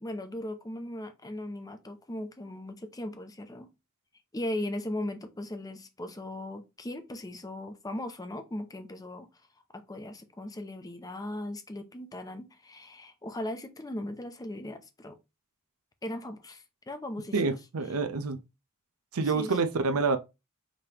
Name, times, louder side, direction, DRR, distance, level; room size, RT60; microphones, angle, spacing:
voice 1, 0.0-3.7 4.3-9.3 9.7-15.2 16.0-17.5 19.3-19.6, left 1 dB, 15° left, 0.6 m, -38 dB
voice 2, 17.3-18.4 19.1-20.2, right 4 dB, 75° right, 0.6 m, -27 dB
5.2 x 3.3 x 2.9 m
head